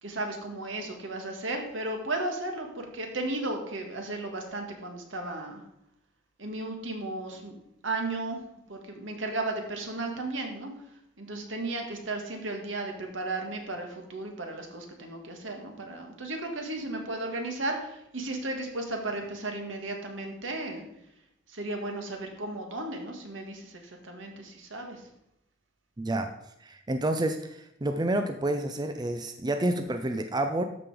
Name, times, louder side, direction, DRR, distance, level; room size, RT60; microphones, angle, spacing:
voice 1, 0.0-5.6 6.4-7.6 7.8-8.4 8.7-10.7 11.2-20.9 21.5-25.0, right 2 dB, 80° right, 3 dB, 1.8 m, -34 dB
voice 2, 26.0-26.3 26.6-30.6, right 1 dB, 20° right, 6 dB, 0.5 m, -29 dB
13.0 x 5.2 x 4.9 m, 0.79 s
head